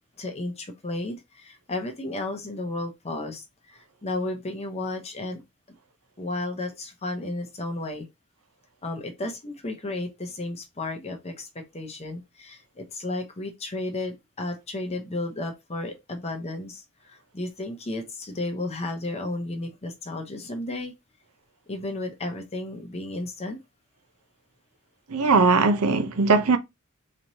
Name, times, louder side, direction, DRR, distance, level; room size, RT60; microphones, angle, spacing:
voice 1, 0.2-5.4 6.2-8.1 8.8-20.9 21.7-23.6, left 2 dB, 30° left, 0.7 m, -33 dB
voice 2, 25.1-26.6, right 4 dB, 85° right, 0.6 m, -19 dB
4.2 x 3.1 x 2.7 m
head